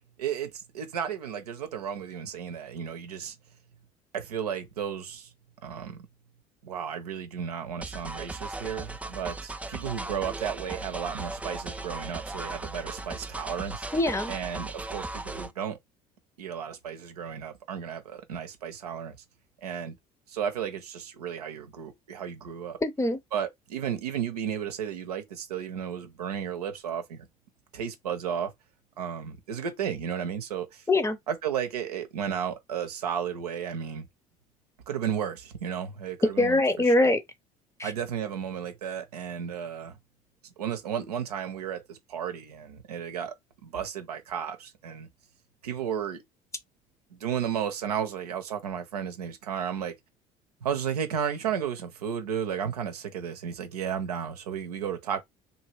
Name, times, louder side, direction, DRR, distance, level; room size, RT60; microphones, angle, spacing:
voice 1, 0.2-3.3 4.1-5.3 5.6-6.0 6.6-13.9 14.3-15.8 16.4-19.2 19.6-20.0 20.3-22.8 23.3-27.3 27.7-28.5 29.0-30.8 31.3-34.1 34.9-37.1 37.8-40.0 40.6-43.4 43.6-45.1 45.6-46.2 47.1-50.0 50.6-55.2, right 8 dB, 80° right, 0.7 m, -33 dB
sound 1, 7.8-15.5, right 2 dB, 5° right, 0.4 m, -37 dB
voice 2, 13.9-14.3 22.8-23.2 30.9-31.2 36.2-37.2 37.8-37.9, left 2 dB, 15° left, 0.7 m, -23 dB
2.8 x 2.7 x 3.0 m
figure-of-eight pair, 60°, 20 cm